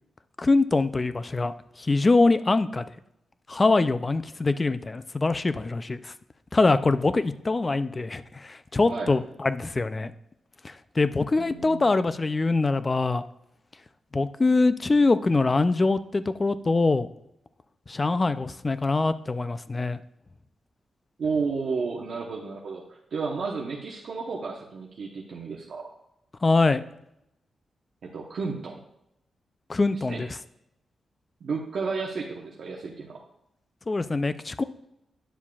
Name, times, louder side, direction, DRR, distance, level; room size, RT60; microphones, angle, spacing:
voice 1, 0.4-2.8 3.5-6.1 6.5-10.1 10.6-13.2 14.1-17.1 17.9-20.0 26.4-26.8 29.7-30.3 33.9-34.6, left 3 dB, 20° left, 12 dB, 0.3 m, -23 dB
voice 2, 11.3-11.9 21.2-25.8 28.0-28.8 29.9-30.2 31.4-33.2, right 4 dB, 55° right, -2 dB, 0.9 m, -32 dB
10.0 x 7.2 x 2.3 m, 0.81 s
wide cardioid pair, 170°, 0 cm